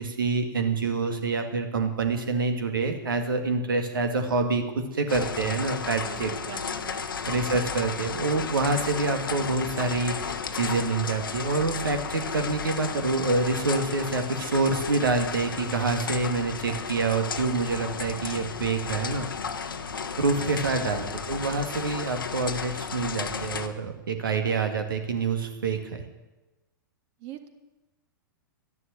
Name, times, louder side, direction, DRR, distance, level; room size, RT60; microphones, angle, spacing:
voice 1, 0.0-6.3 7.3-19.3 20.2-26.0, right 3 dB, 70° right, 6 dB, 2.1 m, -27 dB
sound 1, 5.1-23.7, left 6 dB, 70° left, 1.1 m, -34 dB
voice 2, 6.0-6.9 20.4-20.8 27.2-27.5, right 10 dB, 40° right, 7 dB, 1.8 m, -43 dB
12.5 x 11.0 x 7.8 m, 1.1 s
figure-of-eight pair, 105°, 12 cm